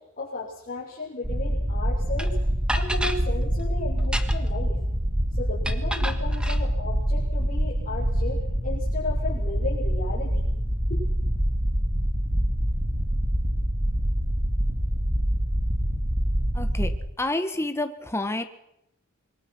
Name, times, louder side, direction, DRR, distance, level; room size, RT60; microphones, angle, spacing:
voice 1, 0.2-2.3 2.7-4.7 5.4-10.5 10.9-11.1, left 3 dB, 40° left, -7 dB, 7.3 m, -34 dB
sound 1, 1.2-17.0, equal, 35° right, 3.6 m, -25 dB
sound 2, 2.2-2.3 2.7-3.2 4.0-4.6 5.6-6.6, equal, 5° right, 1.6 m, -31 dB
voice 2, 16.5-16.9 17.2-18.4, left 1 dB, 10° left, 7 dB, 1.5 m, -28 dB
26.5 x 23.5 x 6.2 m, 0.81 s
head